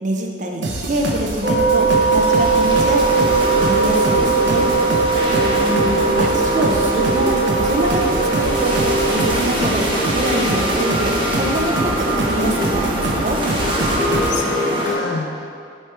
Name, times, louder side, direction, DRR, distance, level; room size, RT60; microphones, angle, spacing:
voice 1, 0.0-3.3 3.6-4.7 6.2-8.8 9.1-9.8 10.1-13.4, right 1 dB, 45° right, 1 dB, 0.7 m, -24 dB
sound 1, 0.6-14.3, right 2 dB, 85° right, 0.8 m, -26 dB
sound 2, 1.2-14.9, equal, 30° right, 1.1 m, -23 dB
sound 3, 1.4-9.3, right 4 dB, 70° right, 1.3 m, -19 dB
voice 2, 5.3-6.2 14.3-15.5, left 3 dB, 75° left, 2 dB, 0.7 m, -28 dB
7.6 x 3.4 x 4.5 m, 2.4 s
head